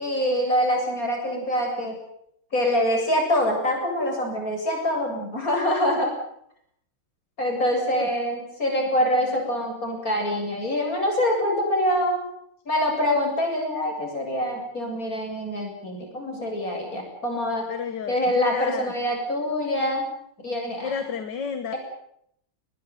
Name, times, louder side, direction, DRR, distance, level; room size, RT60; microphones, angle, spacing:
voice 1, 0.0-2.0 2.5-6.1 7.4-12.2 12.7-17.7 18.1-20.1 20.4-20.9, equal, 40° left, 2 dB, 8.4 m, -25 dB
voice 2, 17.7-18.9 20.8-21.7, left 6 dB, 55° left, 10 dB, 1.9 m, -31 dB
22.0 x 19.0 x 9.5 m, 0.72 s
omnidirectional pair, 2.4 m